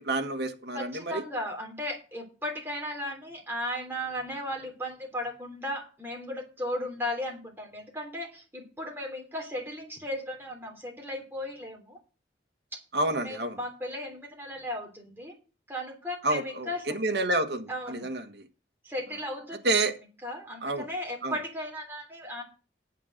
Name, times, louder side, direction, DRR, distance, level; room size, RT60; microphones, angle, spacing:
voice 1, 0.0-1.2 12.9-13.6 16.2-18.4 19.6-19.9 20.6-20.9 21.2-21.4, right 2 dB, 65° right, 6 dB, 1.4 m, -29 dB
voice 2, 0.7-12.0 12.7-12.8 13.2-15.3 15.7-16.9 17.7-18.1 18.8-19.6 20.2-22.4, left 1 dB, 10° right, 0 dB, 3.2 m, -36 dB
9.2 x 7.6 x 6.4 m, 0.35 s
head